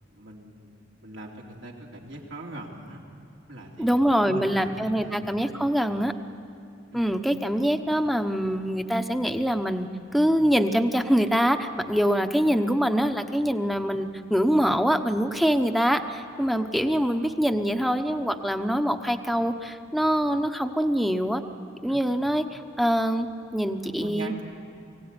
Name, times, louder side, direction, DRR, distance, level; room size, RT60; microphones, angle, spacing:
voice 1, 0.1-0.7 1.0-3.0 3.5-5.2 6.9-7.0 21.9-22.0 23.8-24.4, right 1 dB, 80° right, -1 dB, 3.3 m, -41 dB
voice 2, 3.8-6.1 6.9-9.9 10.1-21.4 21.8-23.3 23.5-24.3, equal, ahead, 7 dB, 0.9 m, -24 dB
23.5 x 16.5 x 9.7 m, 2.7 s
head